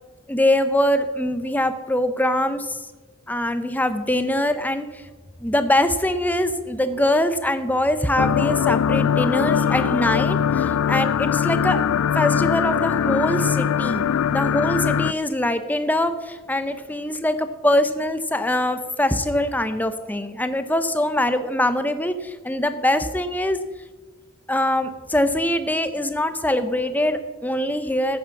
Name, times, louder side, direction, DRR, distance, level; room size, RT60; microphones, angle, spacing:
voice 1, 0.3-2.8 3.3-5.0 5.4-11.8 12.1-14.0 14.3-23.6 24.5-28.2, left 1 dB, 10° left, 9 dB, 0.8 m, -23 dB
sound 1, 8.2-15.1, left 8 dB, 90° left, 0.4 m, -21 dB
13.0 x 8.8 x 7.1 m, 1.3 s
head